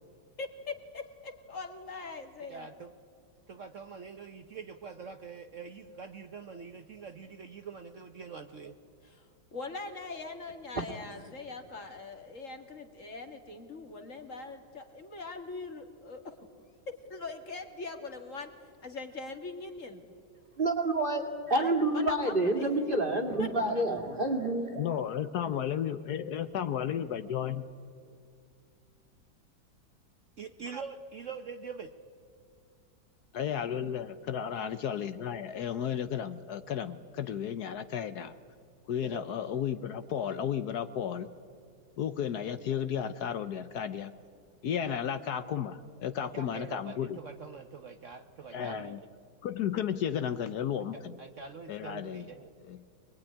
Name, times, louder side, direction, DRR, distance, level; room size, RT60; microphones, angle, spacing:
voice 1, 0.4-2.7 9.0-16.4 16.9-18.5 18.8-20.0 21.5-22.7 23.4-23.5 23.8-23.9, left 3 dB, 45° left, 5 dB, 2.1 m, -42 dB
voice 2, 2.5-2.9 3.5-8.7 30.4-31.9 39.0-39.2 44.8-45.0 46.2-49.0 50.9-52.5, right 5 dB, 50° right, 7 dB, 1.1 m, -44 dB
voice 3, 20.6-24.9, right 2 dB, 30° right, 4 dB, 2.6 m, -28 dB
voice 4, 24.8-27.6 33.3-38.3 38.9-41.3 42.0-44.1 44.6-47.2 48.5-49.0 49.4-51.2 51.7-52.3 52.6-52.8, left 9 dB, 65° left, 11 dB, 1.3 m, -33 dB
25.0 x 21.0 x 10.0 m, 2.3 s
omnidirectional pair, 1.9 m